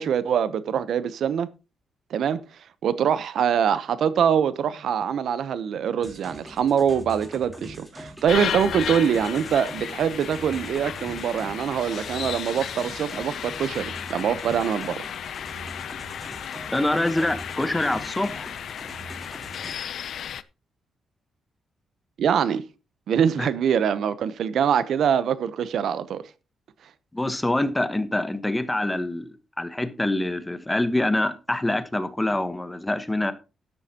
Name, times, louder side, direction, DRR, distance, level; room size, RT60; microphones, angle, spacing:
voice 1, 0.0-1.5 2.1-2.4 2.8-15.1 22.2-22.6 23.1-26.2, right 8 dB, 70° right, 0.8 m, -24 dB
sound 1, 6.0-19.7, right 1 dB, 5° right, 3.8 m, -43 dB
sound 2, 8.3-20.4, left 9 dB, 70° left, 0.6 m, -34 dB
voice 2, 16.7-18.5 23.4-23.5 27.1-33.3, left 1 dB, 10° left, 1.1 m, -25 dB
12.5 x 10.5 x 2.9 m
cardioid pair, 105°, 0 cm